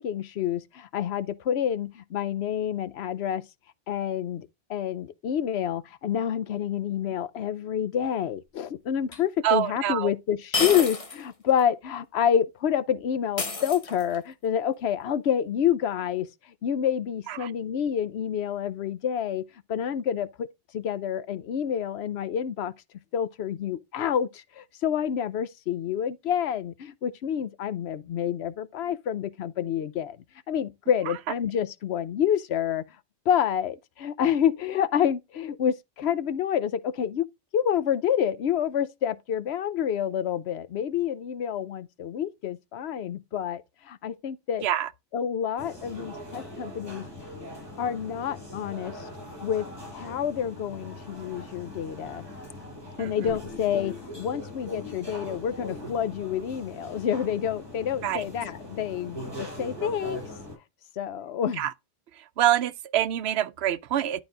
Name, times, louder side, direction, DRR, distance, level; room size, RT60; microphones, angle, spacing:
voice 1, 0.0-3.4 3.9-16.3 16.6-20.5 20.7-22.7 23.1-30.2 30.5-32.8 33.3-37.3 37.5-44.7 45.1-47.1 47.8-49.1 49.4-52.2 53.0-60.2 61.0-61.6, left 9 dB, 80° left, 0.9 m, -28 dB
sound 1, 9.1-9.2 10.5-11.2 11.6-11.7 13.4-14.3, left 3 dB, 35° left, 1.2 m, -29 dB
voice 2, 9.4-10.1 17.3-17.5 31.1-31.2 44.6-44.9 53.0-53.4 58.0-58.2 61.6-61.7 62.2-64.2, right 12 dB, 80° right, 0.9 m, -26 dB
sound 2, 45.6-60.6, left 1 dB, 25° right, 5.8 m, -41 dB
11.5 x 4.1 x 3.9 m
omnidirectional pair, 1.1 m